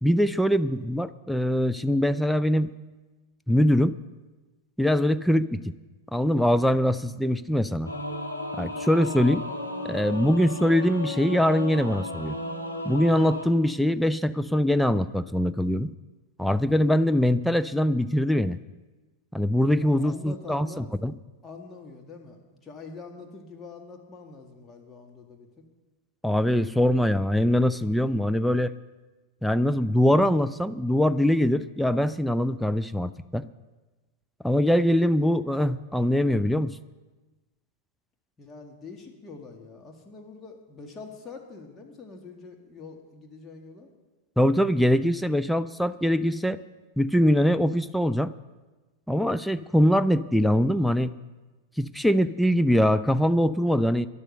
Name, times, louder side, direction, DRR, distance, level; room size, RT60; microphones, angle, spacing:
voice 1, 0.0-2.7 3.5-4.0 4.8-5.7 6.1-7.9 8.5-9.4 9.9-12.4 12.8-15.9 16.4-18.6 19.3-21.1 26.2-28.7 29.4-33.4 34.4-36.8 44.4-46.6 47.0-48.3 49.1-51.1 51.8-54.1, equal, ahead, 11 dB, 0.4 m, -23 dB
Singing / Musical instrument, 7.9-13.5, left 2 dB, 90° left, 1.6 m, -34 dB
voice 2, 19.7-20.8 21.4-25.5 38.4-43.9, left 3 dB, 20° left, 2 dB, 1.8 m, -44 dB
12.0 x 11.0 x 6.6 m, 1.2 s
figure-of-eight pair, 90°, 0 cm